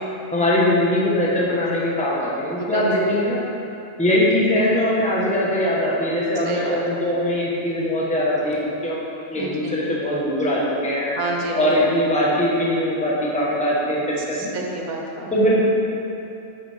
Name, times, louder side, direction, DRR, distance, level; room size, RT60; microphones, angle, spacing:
voice 1, 0.3-3.4 4.0-9.0 9.3-11.1 11.5-14.5 15.3-15.6, left 1 dB, 5° left, -5 dB, 1.2 m, -21 dB
voice 2, 2.6-3.0 6.4-6.8 9.4-9.7 11.2-11.7 14.5-15.4, right 3 dB, 90° right, 0 dB, 1.5 m, -28 dB
9.9 x 7.0 x 3.6 m, 2.8 s
omnidirectional pair, 1.5 m